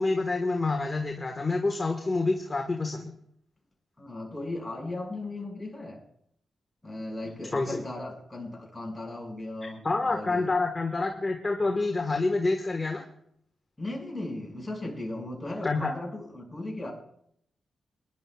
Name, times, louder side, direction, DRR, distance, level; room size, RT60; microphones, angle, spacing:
voice 1, 0.0-3.2 7.5-7.8 9.8-13.0 15.6-15.9, left 3 dB, 30° left, 2 dB, 1.4 m, -27 dB
voice 2, 4.0-6.0 6.8-10.5 13.8-16.9, left 2 dB, 10° left, -1 dB, 5.8 m, -37 dB
23.0 x 11.0 x 2.4 m, 0.71 s
cardioid pair, 60°, 0 cm